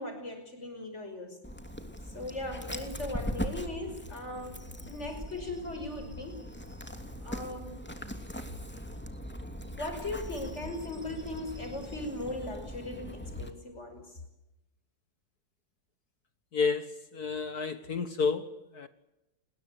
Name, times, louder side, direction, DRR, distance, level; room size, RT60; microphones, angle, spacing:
voice 1, 0.0-1.4 2.1-6.4 7.2-7.8 9.8-14.2, left 2 dB, 35° left, 6.0 m, -38 dB
Dog, 1.4-13.5, equal, 5° left, 2.8 m, -41 dB
voice 2, 16.5-18.9, left 5 dB, 55° left, 1.8 m, -31 dB
29.5 x 21.5 x 8.3 m
omnidirectional pair, 2.0 m